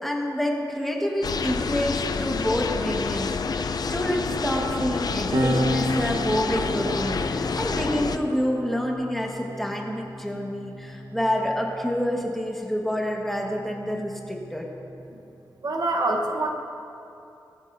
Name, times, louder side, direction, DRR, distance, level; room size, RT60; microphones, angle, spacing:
voice 1, 0.0-14.7, equal, 5° left, -1 dB, 1.5 m, -28 dB
sound 1, 1.2-8.2, left 5 dB, 60° left, 0.5 m, -28 dB
sound 2, 5.3-12.2 13.2-15.1, equal, 80° right, 1.2 m, -32 dB
voice 2, 15.6-16.5, right 2 dB, 60° right, 2 dB, 1.1 m, -25 dB
20.0 x 13.5 x 2.7 m, 2.8 s
wide cardioid pair, 140°, 8 cm